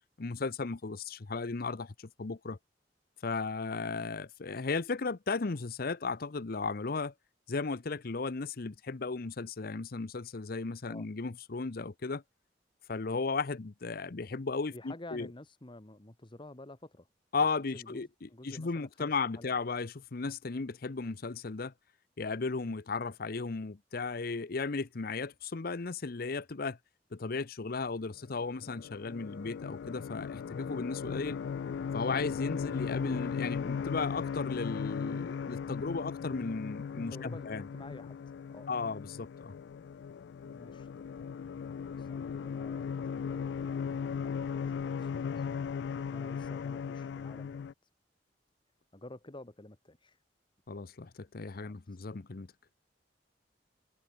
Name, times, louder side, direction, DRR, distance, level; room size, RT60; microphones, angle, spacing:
voice 1, 0.2-2.6 3.2-7.1 7.5-12.2 12.9-15.3 17.3-21.7 22.2-26.8 27.1-31.4 31.9-37.6 38.7-39.5 50.7-52.5, left 4 dB, 55° left, 0.7 m, -35 dB
voice 2, 14.7-17.1 17.6-19.6 36.9-38.2 38.5-38.7 40.4-41.2 41.8-44.0 44.2-45.5 46.0-47.7 48.9-50.2 51.6-52.0, left 1 dB, 30° left, 1.4 m, -50 dB
sound 1, 28.3-47.7, left 6 dB, 70° left, 0.3 m, -37 dB
open air
head